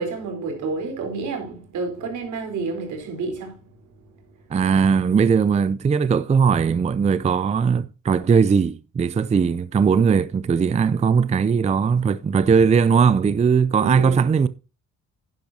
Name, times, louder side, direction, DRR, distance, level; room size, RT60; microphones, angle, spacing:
voice 1, 0.0-3.7 13.8-14.4, right 3 dB, 75° right, 4.1 m, -29 dB
voice 2, 4.5-14.5, right 6 dB, 25° right, 0.4 m, -19 dB
10.5 x 10.5 x 2.8 m
cardioid pair, 90°, 30 cm